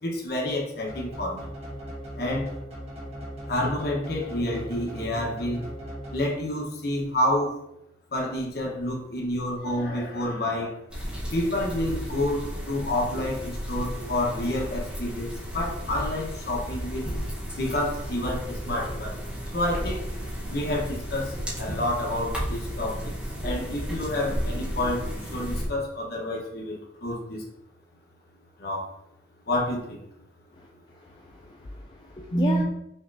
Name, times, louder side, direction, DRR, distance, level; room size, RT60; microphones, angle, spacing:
voice 1, 0.0-1.5 2.2-2.5 3.5-5.7 6.1-7.6 8.1-10.8 11.3-17.1 17.5-19.2 19.5-20.1 20.5-23.1 23.4-27.5 28.6-28.9 29.5-30.0 32.3-32.6, left 1 dB, 60° left, -1 dB, 1.1 m, -29 dB
sound 1, 0.9-6.6, equal, 35° right, 1.3 m, -38 dB
sound 2, 10.9-25.7, equal, 5° right, 1.1 m, -33 dB
voice 2, 31.0-32.6, left 2 dB, 25° left, -1 dB, 0.4 m, -35 dB
5.6 x 3.1 x 2.7 m, 0.82 s
head